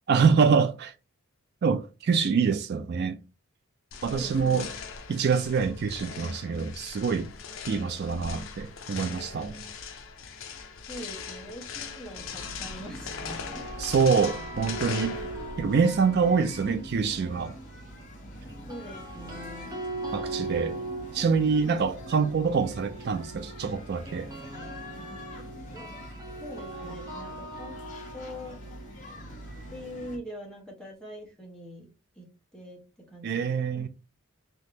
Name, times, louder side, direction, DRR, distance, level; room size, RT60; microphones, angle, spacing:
voice 1, 0.1-0.9 1.6-3.2 4.0-4.7 5.1-7.3 7.7-9.7 13.8-15.2 15.6-17.6 20.1-20.8 21.1-24.3 33.2-33.9, right 5 dB, 50° right, 0.3 m, -25 dB
sound 1, 3.9-15.8, left 5 dB, 65° left, 0.6 m, -40 dB
voice 2, 4.1-4.7 10.9-13.7 18.7-19.8 25.7-25.9 26.4-27.8 28.1-28.6 29.7-31.9 32.2-32.8 33.1-33.8, equal, 5° left, 1.1 m, -43 dB
sound 2, 12.2-30.2, equal, 35° left, 1.2 m, -44 dB
sound 3, 13.1-17.3 18.5-30.4, right 2 dB, 20° right, 0.7 m, -41 dB
3.4 x 2.8 x 2.7 m
head